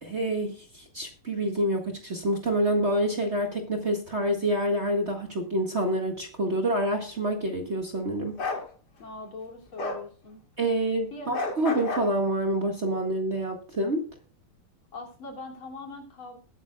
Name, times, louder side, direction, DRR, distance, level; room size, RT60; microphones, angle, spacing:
voice 1, 0.0-8.4 10.6-14.0, right 1 dB, 30° right, 2 dB, 1.9 m, -27 dB
Bark, 8.4-8.6 9.8-10.0 11.3-12.1, left 3 dB, 50° left, 2.8 m, -30 dB
voice 2, 9.0-10.4 11.1-11.4 14.9-16.4, left 3 dB, 70° left, 1 dB, 3.5 m, -41 dB
21.0 x 9.1 x 2.3 m, 0.40 s
omnidirectional pair, 2.4 m